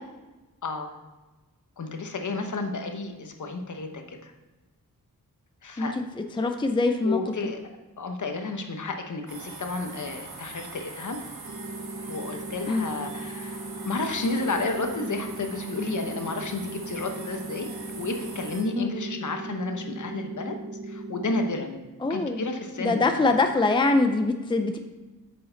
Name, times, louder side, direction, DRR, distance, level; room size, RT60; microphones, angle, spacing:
voice 1, 0.6-1.0 1.8-4.3 5.6-5.9 7.0-7.6 8.0-11.2 12.1-20.6 20.8-21.8 22.1-23.3, left 3 dB, 55° left, 5 dB, 1.0 m, -32 dB
voice 2, 6.4-7.2 12.7-12.9 18.8-19.0 22.0-22.4 22.8-24.8, left 3 dB, 15° left, 6 dB, 0.5 m, -23 dB
sound 1, 9.3-18.6, right 3 dB, 90° right, 1.6 m, -42 dB
sound 2, 11.4-21.5, right 2 dB, 65° right, 1.2 m, -38 dB
8.6 x 6.6 x 3.9 m, 1.2 s
wide cardioid pair, 110°, 35 cm